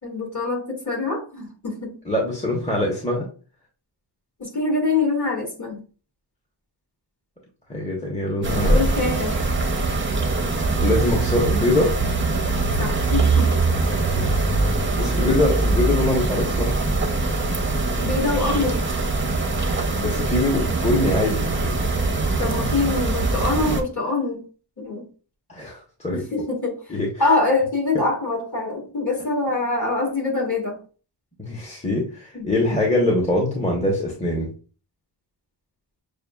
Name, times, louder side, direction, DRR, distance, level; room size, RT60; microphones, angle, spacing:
voice 1, 0.0-1.9 4.4-5.8 8.4-9.5 12.8-13.6 15.0-15.4 18.0-18.8 22.4-24.4 24.8-25.0 26.1-26.8 27.2-30.8 32.3-32.8, left 3 dB, 40° left, -2 dB, 2.2 m, -25 dB
voice 2, 2.1-3.3 7.7-8.8 10.8-11.9 13.9-16.7 19.9-21.8 22.6-22.7 25.5-26.2 26.9-27.1 31.4-34.5, left 1 dB, 15° left, -2 dB, 1.0 m, -23 dB
sound 1, 8.4-23.8, right 3 dB, 25° right, 0.7 m, -22 dB
6.7 x 2.4 x 2.3 m, 0.37 s
wide cardioid pair, 90°, 45 cm